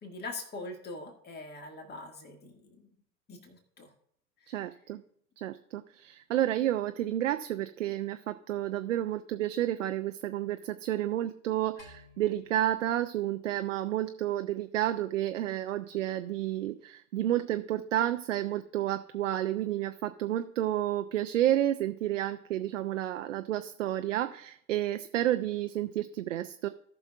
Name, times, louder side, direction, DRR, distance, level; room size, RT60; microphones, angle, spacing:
voice 1, 0.0-2.9 3.3-3.9 4.4-4.6, left 2 dB, 25° left, 4 dB, 2.0 m, -43 dB
voice 2, 4.5-5.0 5.4-26.7, right 13 dB, 65° right, 9 dB, 0.6 m, -31 dB
sound 1, 11.8-14.2, left 2 dB, 70° left, 4.2 m, -57 dB
17.5 x 5.9 x 2.4 m, 0.66 s
figure-of-eight pair, 75°, 40 cm